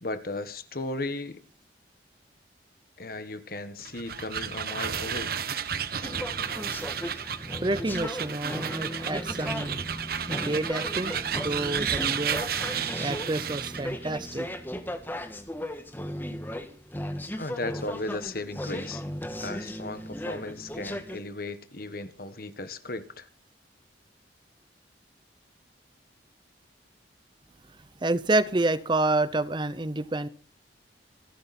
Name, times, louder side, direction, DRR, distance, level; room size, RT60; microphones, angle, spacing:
voice 1, 0.0-1.4 3.0-5.3 17.4-19.0 19.4-23.3, left 2 dB, 50° left, 1.5 m, -36 dB
sound 1, 3.8-13.9, right 8 dB, 55° right, 1.1 m, -32 dB
sound 2, 6.0-21.2, left 1 dB, 10° left, 1.6 m, -36 dB
voice 2, 7.6-9.8 10.3-12.4 13.0-14.5 28.0-30.3, right 2 dB, 25° right, 0.7 m, -28 dB
27.5 x 11.0 x 4.3 m
head